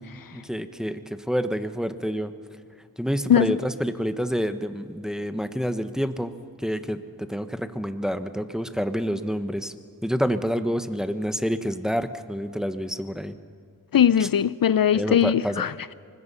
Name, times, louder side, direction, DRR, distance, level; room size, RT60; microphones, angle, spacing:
voice 1, 0.3-2.3 3.0-6.3 6.6-9.7 10.0-13.4 14.2-14.3 14.9-15.6, equal, ahead, 9 dB, 1.1 m, -28 dB
voice 2, 13.9-15.9, left 9 dB, 70° left, 17 dB, 0.5 m, -20 dB
24.5 x 20.5 x 5.6 m, 2.4 s
wide cardioid pair, 50°, 36 cm